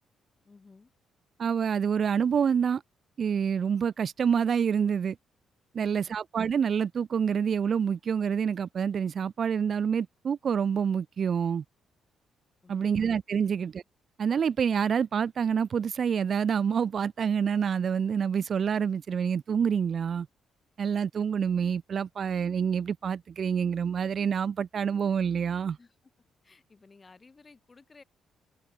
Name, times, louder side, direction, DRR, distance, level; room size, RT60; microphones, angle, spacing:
voice 1, 0.4-0.9 5.8-6.2 12.6-13.0 13.4-13.6 25.8-26.1 26.4-28.0, left 4 dB, 30° left, 3.9 m, -57 dB
voice 2, 1.4-2.8 3.2-5.2 5.7-11.6 12.7-13.8 14.2-20.3 20.8-25.8, right 7 dB, 50° right, 0.6 m, -27 dB
cardioid pair, 90°, 0 cm